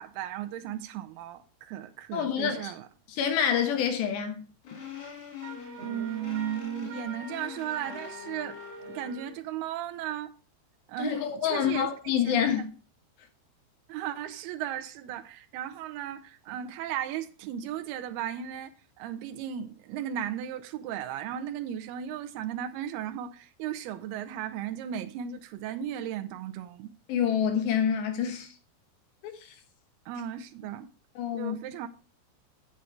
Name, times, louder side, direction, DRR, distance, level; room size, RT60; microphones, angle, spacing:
voice 1, 0.0-2.9 5.8-8.6 8.9-10.4 10.9-11.9 12.2-12.6 13.9-18.7 19.0-26.9 30.1-30.9 31.3-31.9, right 10 dB, 85° right, 2.2 m, -36 dB
voice 2, 2.1-2.7 3.1-4.4 11.0-12.7 27.1-28.5 29.2-29.5 31.2-31.6, left 8 dB, 75° left, 3.2 m, -27 dB
sound 1, 4.6-9.2, left 7 dB, 55° left, 4.1 m, -43 dB
Wind instrument woodwind instrument, 5.4-9.3, right 2 dB, 55° right, 1.8 m, -45 dB
8.4 x 7.6 x 4.5 m
omnidirectional pair, 5.3 m